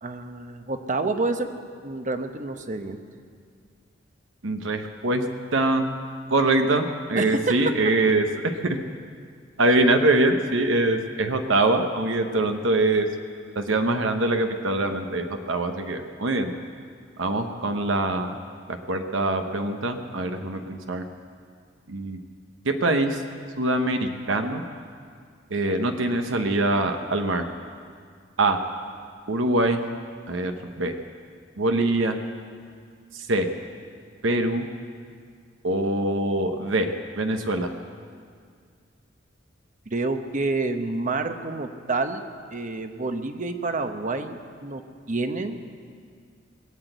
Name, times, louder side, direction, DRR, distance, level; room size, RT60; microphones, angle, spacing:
voice 1, 0.0-1.5 1.8-3.0 7.2-7.6 39.9-42.2 42.5-44.8 45.1-45.6, right 3 dB, 40° right, 7 dB, 0.9 m, -28 dB
voice 2, 4.4-5.2 5.5-5.9 6.3-8.8 9.6-13.1 13.5-16.5 17.2-18.4 18.7-21.0 21.9-22.2 22.6-23.2 23.6-24.6 25.5-27.4 28.4-28.6 29.3-29.8 30.3-31.0 31.6-32.2 33.1-33.5 34.2-34.7 35.6-37.7, right 2 dB, 75° right, 6 dB, 1.0 m, -23 dB
20.5 x 8.1 x 8.0 m, 2.1 s
head